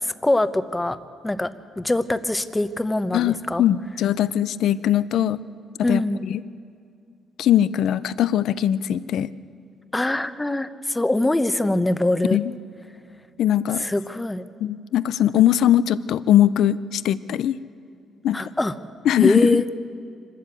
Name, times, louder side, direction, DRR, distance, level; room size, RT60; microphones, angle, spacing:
voice 1, 0.0-1.0 1.2-1.5 1.8-3.6 5.8-6.2 9.9-12.4 13.8-14.4 18.3-18.7 19.2-19.7, left 1 dB, 15° left, 11 dB, 0.9 m, -23 dB
voice 2, 3.1-5.4 5.9-6.4 7.4-9.3 12.3-12.5 13.4-13.8 14.6-17.6 18.2-18.4 19.1-19.6, left 11 dB, 75° left, 16 dB, 0.5 m, -20 dB
25.5 x 13.0 x 8.3 m, 2.3 s
cardioid pair, 90°, 0 cm